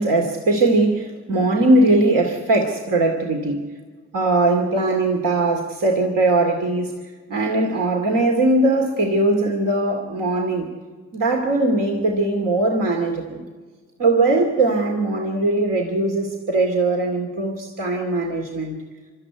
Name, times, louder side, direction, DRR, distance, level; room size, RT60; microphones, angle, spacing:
voice 1, 0.0-3.6 4.1-6.9 7.3-10.7 11.1-13.5 14.0-18.8, right 2 dB, 75° right, 2 dB, 2.5 m, -20 dB
24.0 x 13.5 x 9.4 m, 1.5 s
supercardioid pair, 45°, 33 cm